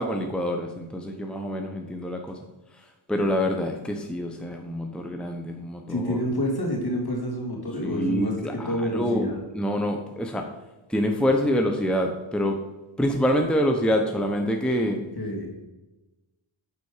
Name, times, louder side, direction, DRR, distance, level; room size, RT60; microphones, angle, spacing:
voice 1, 0.0-2.4 2.7-2.8 3.1-6.2 7.8-10.4 10.9-12.6 13.0-15.0, equal, ahead, 3 dB, 0.9 m, -26 dB
voice 2, 5.9-9.4 15.2-15.5, equal, 50° left, -1 dB, 2.6 m, -28 dB
8.9 x 4.2 x 4.9 m, 1.1 s
cardioid pair, 50°, 50 cm